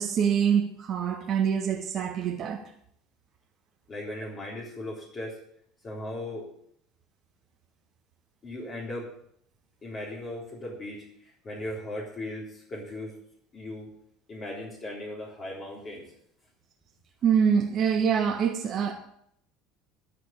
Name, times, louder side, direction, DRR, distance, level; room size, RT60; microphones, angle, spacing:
voice 1, 0.0-2.6 17.2-18.9, right 7 dB, 40° right, 1 dB, 1.5 m, -25 dB
voice 2, 3.9-5.4 5.8-6.5 8.4-9.1 9.8-13.2 13.5-13.9 14.3-16.1, left 1 dB, 30° left, -4 dB, 3.7 m, -37 dB
13.5 x 6.3 x 8.9 m, 0.70 s
figure-of-eight pair, 65°, 0 cm